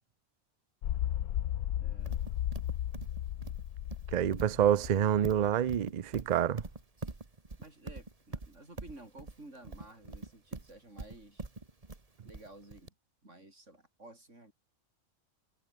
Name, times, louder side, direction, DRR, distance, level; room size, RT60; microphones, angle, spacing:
sound 1, 0.8-5.6 5.8-5.9, left 12 dB, 80° left, 1.3 m, -35 dB
voice 1, 1.8-2.2 7.6-11.5 12.2-12.9 13.2-14.5, right 2 dB, 55° right, 6.6 m, -53 dB
Livestock farm animals working animals, 2.1-12.9, right 3 dB, 25° right, 1.8 m, -43 dB
voice 2, 4.1-6.6, right 10 dB, 80° right, 0.4 m, -27 dB
omnidirectional pair, 1.5 m